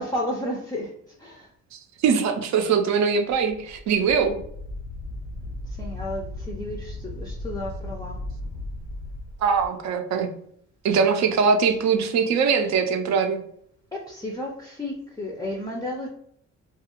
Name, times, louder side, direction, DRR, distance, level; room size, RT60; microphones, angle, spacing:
voice 1, 0.0-1.5 5.7-8.2 11.2-11.3 13.9-16.1, left 1 dB, 15° left, -1 dB, 0.4 m, -32 dB
voice 2, 1.7-4.4 9.4-10.3 10.8-13.4, right 6 dB, 65° right, 6 dB, 0.5 m, -22 dB
Wind, 3.3-9.7, left 2 dB, 90° left, 0.8 m, -36 dB
2.4 x 2.3 x 2.9 m, 0.67 s
cardioid pair, 90°, 30 cm